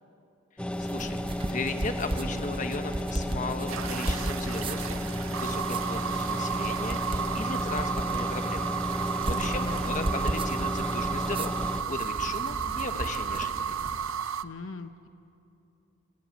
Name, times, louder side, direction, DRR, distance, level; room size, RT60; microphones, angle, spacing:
sound 1, 0.6-11.8, equal, 5° left, 0.8 m, -33 dB
sound 2, 0.7-14.2, right 1 dB, 25° right, 0.8 m, -36 dB
voice 1, 0.8-13.8, left 3 dB, 35° left, 7 dB, 1.3 m, -37 dB
sound 3, 3.7-14.4, right 7 dB, 80° right, 0.6 m, -33 dB
voice 2, 9.2-10.1 14.4-15.1, left 3 dB, 70° left, 9 dB, 0.8 m, -41 dB
22.5 x 18.5 x 8.3 m, 2.7 s
head